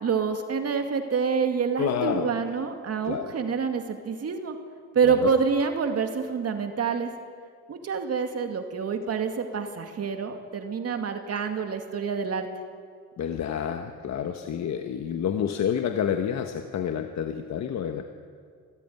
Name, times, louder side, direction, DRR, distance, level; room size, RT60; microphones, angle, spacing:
voice 1, 0.0-4.6 4.9-7.1 7.7-12.5, right 6 dB, 55° right, 5 dB, 2.2 m, -27 dB
voice 2, 1.8-2.3 3.0-3.3 5.0-5.3 13.2-18.0, left 8 dB, 60° left, 6 dB, 1.3 m, -29 dB
25.0 x 14.5 x 9.4 m, 2.1 s
cardioid pair, 90°, 30 cm